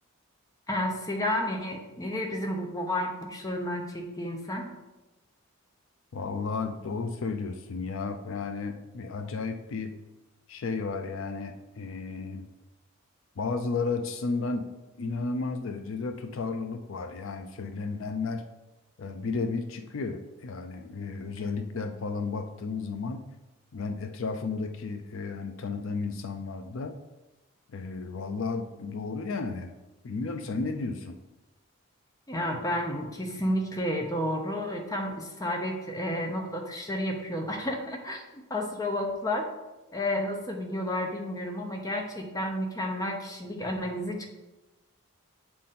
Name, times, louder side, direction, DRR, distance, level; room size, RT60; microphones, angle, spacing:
voice 1, 0.7-4.7 32.3-38.2 38.5-39.5 39.9-44.3, left 1 dB, 15° left, 2 dB, 0.7 m, -31 dB
voice 2, 6.1-9.9 10.5-12.4 13.4-14.7 15.0-18.4 19.0-23.3 23.7-27.0 27.7-29.7 30.0-31.2, left 4 dB, 65° left, 7 dB, 0.4 m, -33 dB
7.5 x 3.8 x 4.2 m, 1.0 s
head